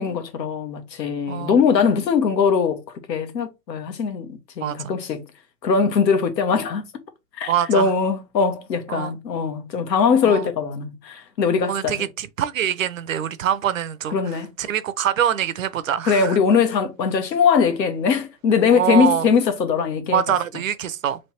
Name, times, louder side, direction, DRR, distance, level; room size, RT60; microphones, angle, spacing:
voice 1, 0.0-2.8 3.1-5.2 5.6-6.8 7.4-12.1 14.1-14.5 16.1-20.2, left 6 dB, 80° left, 1.3 m, -21 dB
voice 2, 1.3-1.6 4.6-4.8 7.5-7.9 8.9-9.1 10.2-10.5 11.7-16.4 18.7-19.3 20.1-21.2, right 10 dB, 55° right, 0.5 m, -24 dB
3.3 x 3.1 x 4.2 m
hypercardioid pair, 170°, 49 cm